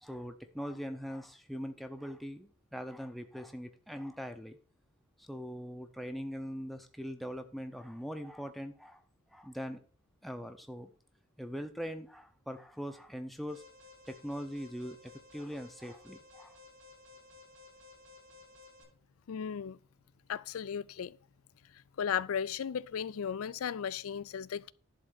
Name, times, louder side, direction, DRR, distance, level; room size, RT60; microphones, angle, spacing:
voice 1, 0.0-4.6 5.2-9.0 9.3-9.8 10.2-10.9 11.4-13.6 14.1-16.6, equal, ahead, 0.6 m, -41 dB
Alarm, 13.5-18.8, left 3 dB, 70° right, 5.3 m, -56 dB
voice 2, 19.3-19.8 20.3-21.2 22.0-24.7, left 7 dB, 80° left, 0.4 m, -35 dB
11.0 x 3.7 x 6.6 m
head